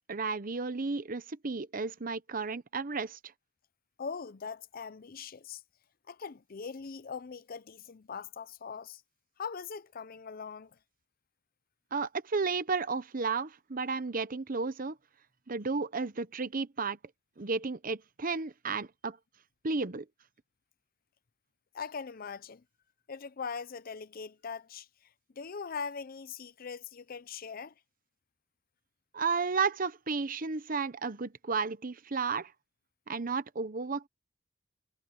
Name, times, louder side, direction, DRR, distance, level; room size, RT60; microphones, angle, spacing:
voice 1, 0.1-3.2 11.9-15.0 15.5-17.0 17.4-19.2 19.6-20.1 29.1-32.5 33.1-34.1, right 4 dB, 45° right, 0.9 m, -33 dB
voice 2, 4.0-5.6 6.1-9.0 9.4-10.7 21.7-22.6 23.1-24.9 25.4-27.7, left 5 dB, 50° left, 0.6 m, -41 dB
head